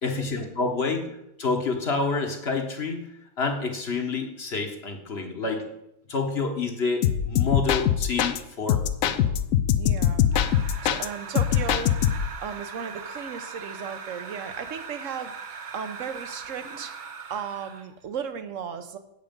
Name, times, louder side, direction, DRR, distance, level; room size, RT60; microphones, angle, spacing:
voice 1, 0.0-3.1 3.4-5.7 6.1-9.3, left 4 dB, 50° left, 4 dB, 1.4 m, -28 dB
sound 1, 7.0-8.4 8.7-11.1 11.4-12.4, left 9 dB, 75° left, 1.0 m, -23 dB
voice 2, 9.8-10.2 10.8-11.9 12.4-15.3 15.7-16.9 17.3-19.0, right 7 dB, 65° right, 9 dB, 1.2 m, -35 dB
sound 2, 10.3-17.9, right 5 dB, 45° right, 0.7 m, -40 dB
8.2 x 8.0 x 5.2 m, 0.81 s
omnidirectional pair, 1.5 m